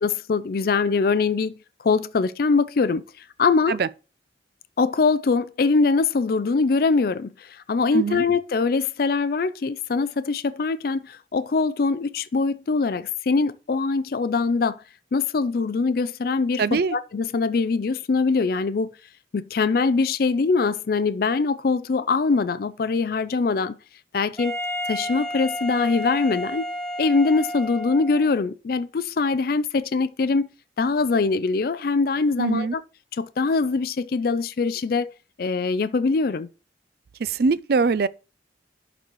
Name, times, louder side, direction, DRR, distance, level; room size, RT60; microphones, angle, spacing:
voice 1, 0.0-3.8 4.8-14.8 15.1-18.9 19.3-23.8 24.1-24.6 24.9-26.7 27.0-30.5 30.8-32.8 33.1-35.1 35.4-36.5, left 4 dB, 55° left, 0.4 m, -23 dB
voice 2, 7.9-8.2 16.6-17.0 32.4-32.7 37.2-38.1, right 4 dB, 55° right, 0.4 m, -22 dB
Wind instrument woodwind instrument, 24.4-28.3, equal, 5° left, 1.2 m, -31 dB
11.0 x 4.0 x 3.1 m
head